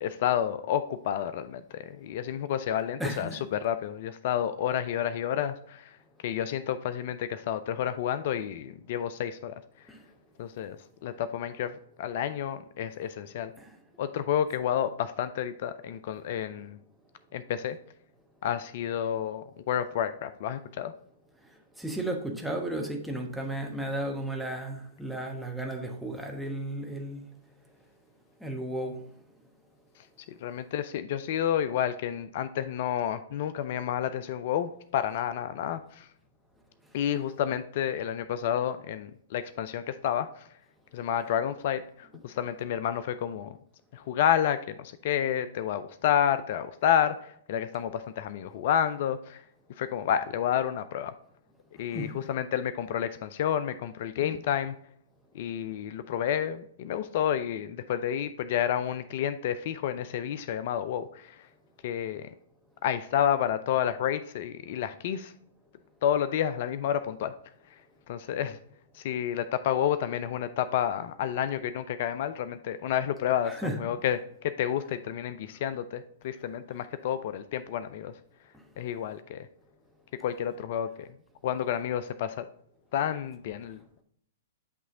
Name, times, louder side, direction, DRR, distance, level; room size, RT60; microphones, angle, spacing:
voice 1, 0.0-6.0 6.2-9.9 10.4-13.5 14.0-16.8 17.3-17.8 18.4-20.9 30.0-36.1 36.9-40.5 40.9-43.6 43.9-49.4 49.8-51.1 51.8-54.7 55.3-61.5 61.8-62.3 62.8-65.3 66.0-67.3 67.7-67.8 68.1-68.6 68.9-78.1 78.8-79.5 80.2-81.1 81.4-82.4 82.9-84.0, left 9 dB, 50° left, 12 dB, 0.3 m, -30 dB
voice 2, 3.0-3.4 9.9-10.0 13.0-13.1 13.6-13.7 21.8-27.2 28.4-29.0 51.9-52.1 73.4-73.8, right 1 dB, 5° right, 1 dB, 1.1 m, -34 dB
8.2 x 3.1 x 3.7 m, 0.67 s
figure-of-eight pair, 115°, 0 cm